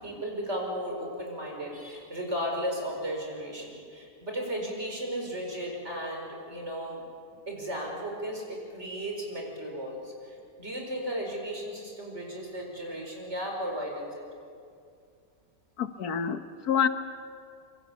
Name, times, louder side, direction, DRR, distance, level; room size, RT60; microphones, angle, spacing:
voice 1, 0.0-7.0 7.5-14.3, equal, 45° right, 0 dB, 5.4 m, -35 dB
voice 2, 15.8-16.9, left 8 dB, 90° left, 10 dB, 1.7 m, -27 dB
26.5 x 24.5 x 7.1 m, 2.4 s
omnidirectional pair, 1.6 m